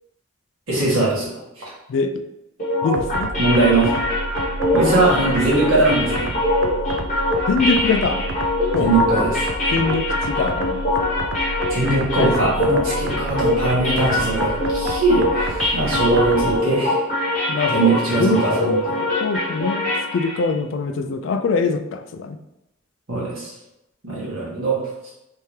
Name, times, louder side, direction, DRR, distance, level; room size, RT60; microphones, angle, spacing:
voice 1, 0.7-1.3 3.4-3.9 4.7-6.3 8.8-9.4 11.7-17.0 17.7-18.7 23.1-23.5 24.0-24.8, right 2 dB, 75° right, -6 dB, 1.5 m, -20 dB
voice 2, 1.9-2.2 2.8-3.3 7.5-8.2 8.7-8.9 9.7-10.8 12.2-12.7 17.5-18.4 19.2-22.4, left 4 dB, 65° left, 7 dB, 0.3 m, -23 dB
sound 1, 2.6-20.5, left 1 dB, 35° left, 1.2 m, -23 dB
sound 2, 2.9-16.6, right 2 dB, 60° right, 0.3 m, -31 dB
3.4 x 2.8 x 3.1 m, 0.89 s
head